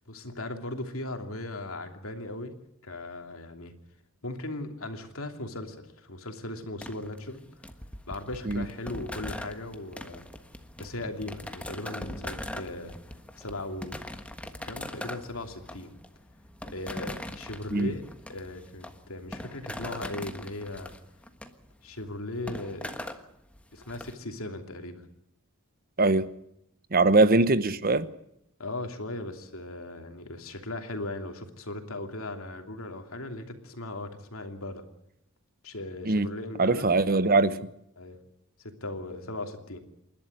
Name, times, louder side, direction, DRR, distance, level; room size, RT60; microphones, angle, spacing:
voice 1, 0.0-2.5 2.8-3.7 4.2-7.4 8.1-10.2 10.8-12.9 13.4-14.0 14.6-15.9 16.7-18.0 18.3-20.9 21.8-22.9 23.7-25.1 27.1-27.3 28.6-34.8 35.6-36.9 38.0-38.2 38.6-39.8, left 2 dB, 65° left, 2.9 m, -38 dB
sound 1, 6.8-24.1, left 1 dB, 5° left, 1.4 m, -41 dB
voice 2, 26.0-26.3 26.9-28.1 36.0-36.3 36.6-37.6, right 3 dB, 40° right, 1.0 m, -22 dB
28.0 x 12.0 x 9.7 m
head